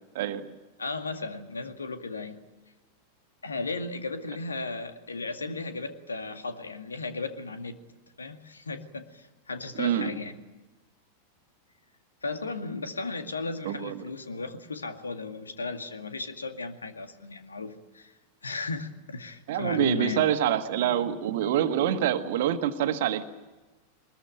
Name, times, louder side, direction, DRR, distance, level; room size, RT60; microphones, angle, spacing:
voice 1, 0.1-0.5 9.7-10.1 13.6-14.0 19.5-23.2, right 10 dB, 55° right, 9 dB, 1.7 m, -26 dB
voice 2, 0.8-2.4 3.4-7.8 8.2-10.4 12.2-18.1 18.4-20.3, left 3 dB, 75° left, 8 dB, 2.1 m, -35 dB
23.0 x 21.0 x 9.0 m, 1.1 s
figure-of-eight pair, 90°, 0 cm